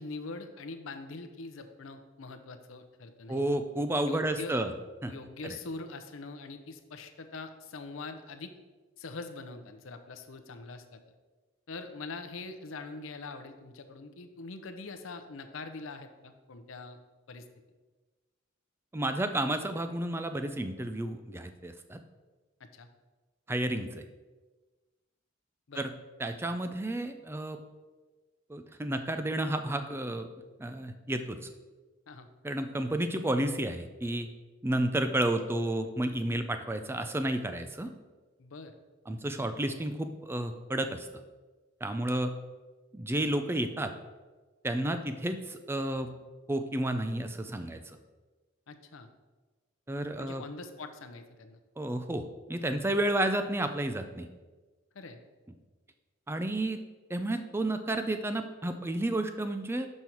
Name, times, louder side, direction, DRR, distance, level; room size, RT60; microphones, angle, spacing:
voice 1, 0.0-3.4 4.0-4.6 5.1-8.5 9.0-11.0 11.7-17.0 17.3-17.5 22.6-22.9 25.7-25.9 32.1-32.3 38.4-38.7 48.7-49.1 50.2-51.6 54.9-55.2, left 3 dB, 80° left, 7 dB, 0.7 m, -43 dB
voice 2, 3.3-4.7 5.0-5.1 18.9-22.0 23.5-24.0 25.7-25.9 26.2-27.6 28.5-30.3 30.6-31.5 32.4-34.3 34.6-37.9 39.1-41.1 41.8-42.3 42.9-43.9 44.6-46.1 46.5-47.8 49.9-50.4 51.8-52.2 52.5-54.3 56.3-56.8 57.1-59.9, right 1 dB, 10° right, 8 dB, 0.4 m, -31 dB
6.2 x 5.4 x 4.4 m, 1.3 s
head